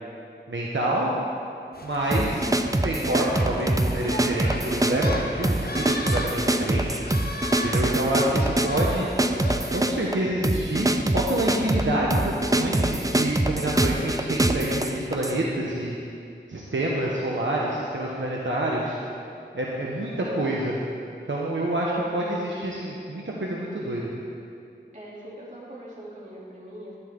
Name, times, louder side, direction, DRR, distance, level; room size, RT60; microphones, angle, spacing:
voice 1, 0.5-1.1 1.8-2.5 2.8-7.0 7.6-9.1 9.7-16.0 16.5-19.0 19.5-20.7 21.3-24.1, right 1 dB, 75° right, -4 dB, 1.2 m, -27 dB
sound 1, 1.7-9.8, left 2 dB, 50° left, 0.9 m, -36 dB
sound 2, 2.1-15.4, right 1 dB, 15° right, 0.6 m, -24 dB
voice 2, 24.9-26.9, right 1 dB, 40° right, -6 dB, 3.1 m, -42 dB
11.5 x 11.0 x 3.8 m, 2.4 s
wide cardioid pair, 50°, 20 cm